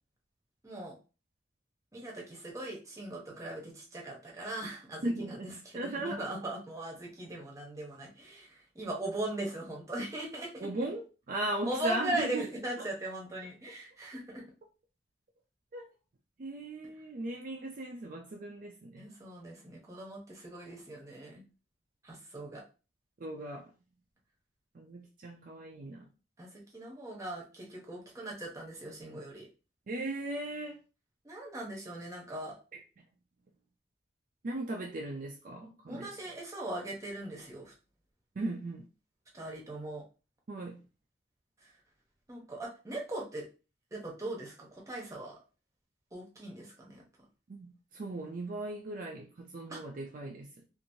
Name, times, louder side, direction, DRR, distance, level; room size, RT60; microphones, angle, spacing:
voice 1, 0.6-1.0 1.9-10.7 11.6-14.4 19.0-21.4 22.0-22.6 26.4-29.5 31.2-32.6 35.9-37.7 39.3-40.0 41.6-41.7 42.3-43.5 43.9-45.4 46.1-47.0 49.7-49.8, right 1 dB, 15° right, 0.8 m, -39 dB
voice 2, 5.0-6.5 10.6-12.4 15.7-15.9 16.4-19.1 23.2-23.7 24.7-26.1 29.9-30.8 34.4-36.1 38.4-38.8 40.5-40.8 47.5-50.6, right 2 dB, 45° right, 0.4 m, -38 dB
3.0 x 2.5 x 2.7 m
head